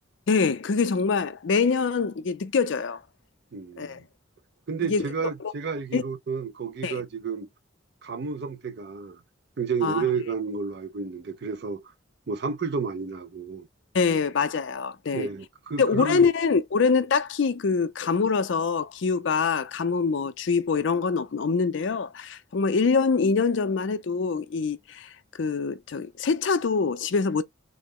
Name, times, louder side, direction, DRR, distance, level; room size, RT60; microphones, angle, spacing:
voice 1, 0.3-3.0 3.8-4.0 4.9-5.1 5.9-6.0 6.8-7.0 9.8-10.1 13.9-15.3 15.8-25.1 25.4-27.4, left 5 dB, 65° left, 0.4 m, -24 dB
voice 2, 3.5-4.0 4.7-7.5 8.0-9.2 9.6-11.8 12.3-13.7 15.1-16.2, right 5 dB, 55° right, 0.5 m, -31 dB
3.8 x 2.0 x 3.6 m
head